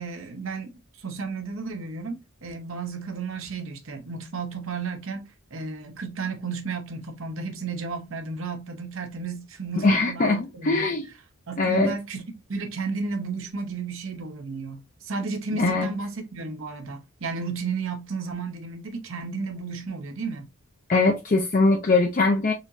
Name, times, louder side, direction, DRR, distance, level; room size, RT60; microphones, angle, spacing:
voice 1, 0.0-10.9 11.5-20.5, right 4 dB, 65° right, 0.8 m, -33 dB
voice 2, 9.8-11.1 11.6-11.9 15.5-15.9 20.9-22.5, left 3 dB, 35° left, 0.5 m, -21 dB
4.1 x 2.9 x 2.5 m
head